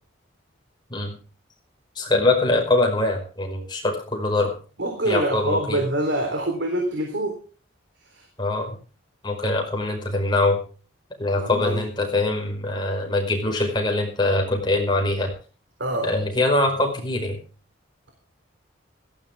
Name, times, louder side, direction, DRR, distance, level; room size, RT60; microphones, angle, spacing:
voice 1, 2.0-4.5 5.1-5.8 8.4-8.7 9.2-10.6 11.2-15.3 16.0-17.4, left 2 dB, 25° left, 1 dB, 5.3 m, -23 dB
voice 2, 4.8-7.4 8.1-8.3 11.4-11.8 15.8-16.1, right 1 dB, 65° right, 3 dB, 3.7 m, -25 dB
17.5 x 14.5 x 3.6 m, 0.38 s
head